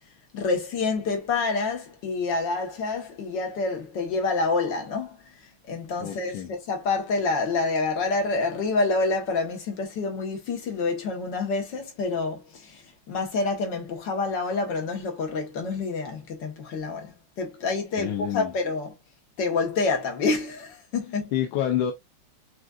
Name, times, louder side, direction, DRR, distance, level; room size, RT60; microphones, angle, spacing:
voice 1, 0.3-5.2 5.7-12.8 13.1-18.9 19.4-21.3, left 3 dB, 60° left, 1.9 m, -27 dB
voice 2, 6.0-6.5 18.0-18.5 21.3-21.9, left 10 dB, 80° left, 1.5 m, -27 dB
6.1 x 2.5 x 2.4 m
omnidirectional pair, 2.3 m